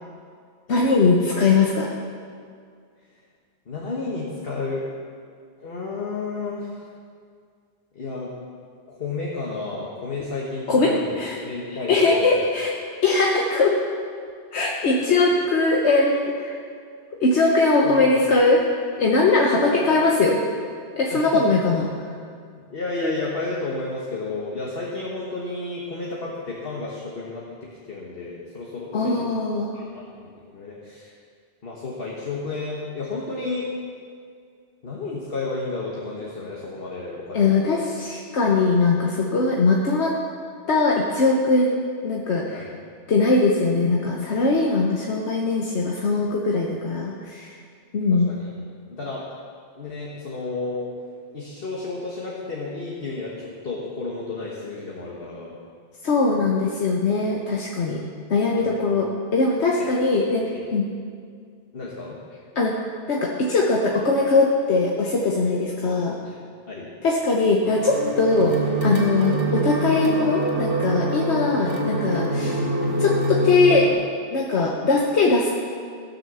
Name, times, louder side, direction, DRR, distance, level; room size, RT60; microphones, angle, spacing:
voice 1, 0.7-1.9 10.7-11.4 11.9-12.7 13.0-13.8 14.5-16.6 17.2-18.6 19.0-20.5 21.0-21.9 28.9-29.7 37.3-40.2 40.7-42.7 43.1-47.6 47.9-48.3 56.0-58.0 58.3-60.9 62.5-62.8 63.1-66.2 67.0-72.6 73.0-73.9 74.3-75.5, left 3 dB, 70° left, -1 dB, 1.3 m, -21 dB
voice 2, 3.7-4.8 5.6-6.8 7.9-8.3 8.9-12.4 17.8-18.3 19.6-19.9 21.1-21.8 22.7-27.5 27.9-29.1 29.7-31.1 31.6-33.7 34.8-37.8 42.5-42.7 48.1-48.5 48.9-49.2 49.8-50.9 51.3-55.6 58.6-58.8 59.8-59.9 60.5-60.7 61.7-62.2 66.2-66.4 66.7-66.9, left 3 dB, 55° left, -4 dB, 1.6 m, -32 dB
sound 1, 67.6-73.9, right 1 dB, 85° right, 2.4 m, -25 dB
16.0 x 7.0 x 6.8 m, 2.1 s
omnidirectional pair, 1.2 m